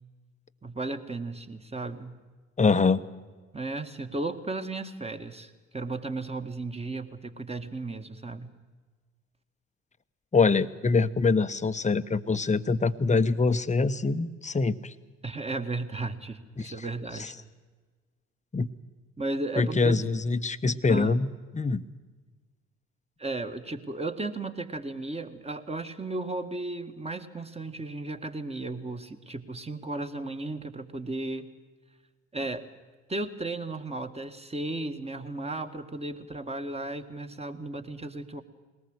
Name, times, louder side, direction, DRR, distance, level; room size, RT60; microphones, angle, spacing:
voice 1, 0.6-2.2 3.5-8.5 15.2-17.3 19.2-20.0 20.9-21.3 23.2-31.5 32.3-32.7 33.1-38.4, right 2 dB, 15° right, 7 dB, 2.0 m, -35 dB
voice 2, 2.6-3.0 10.3-14.9 16.6-16.7 17.2-17.3 18.5-18.7 19.6-21.3 21.5-21.8, left 4 dB, 20° left, 11 dB, 1.0 m, -24 dB
21.5 x 19.0 x 8.1 m, 1.4 s
hypercardioid pair, 55°, 36 cm